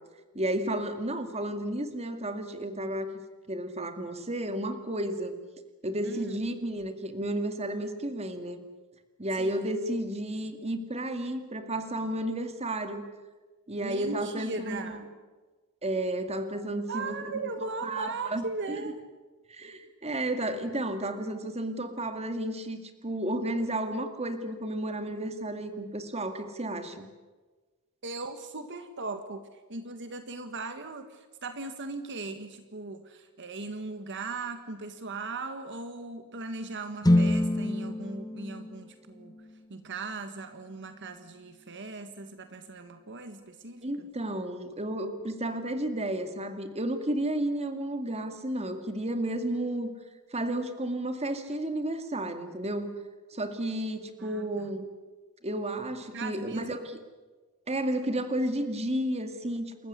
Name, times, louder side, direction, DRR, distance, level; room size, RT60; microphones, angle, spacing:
voice 1, 0.3-3.2 3.5-5.4 5.8-8.6 9.2-13.0 13.7-15.0 15.8-17.3 17.8-18.9 19.5-27.1 43.8-49.9 50.3-52.9 53.3-54.9 55.4-57.0 57.7-59.9, right 1 dB, 30° right, 8 dB, 2.2 m, -32 dB
voice 2, 6.0-6.4 9.4-9.7 13.8-15.1 16.9-19.0 28.0-39.4 39.7-44.0 54.2-54.7 56.1-56.7, right 3 dB, 55° right, 8 dB, 1.7 m, -38 dB
sound 1, 37.0-41.1, left 1 dB, 15° left, 1.8 m, -28 dB
28.5 x 14.5 x 9.8 m, 1.3 s
head